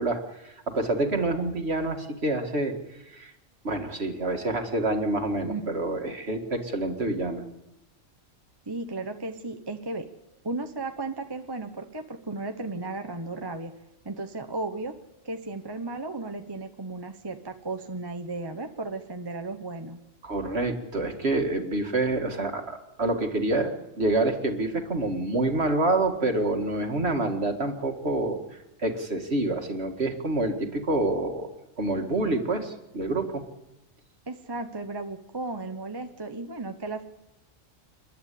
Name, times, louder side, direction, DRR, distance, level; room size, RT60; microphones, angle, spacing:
voice 1, 0.0-2.7 3.1-3.3 3.6-7.4 20.2-31.5 31.8-33.4, right 2 dB, 50° right, 4 dB, 2.3 m, -27 dB
voice 2, 8.7-10.1 10.4-13.7 14.0-15.0 15.2-20.0 34.3-37.0, right 3 dB, 20° right, 6 dB, 1.0 m, -35 dB
29.5 x 11.5 x 8.5 m, 0.95 s
omnidirectional pair, 1.4 m